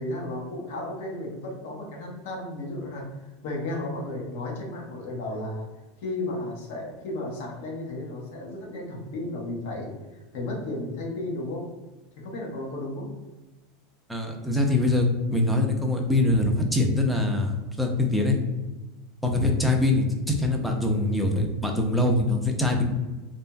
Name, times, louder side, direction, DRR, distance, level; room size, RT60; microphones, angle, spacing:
voice 1, 0.0-3.1 3.4-5.7 6.0-11.6 12.2-13.1, left 2 dB, 75° left, -1 dB, 0.9 m, -34 dB
voice 2, 14.1-18.4 19.2-22.8, left 2 dB, ahead, 2 dB, 0.4 m, -23 dB
2.9 x 2.5 x 2.2 m, 1.1 s
supercardioid pair, 130°, 0 cm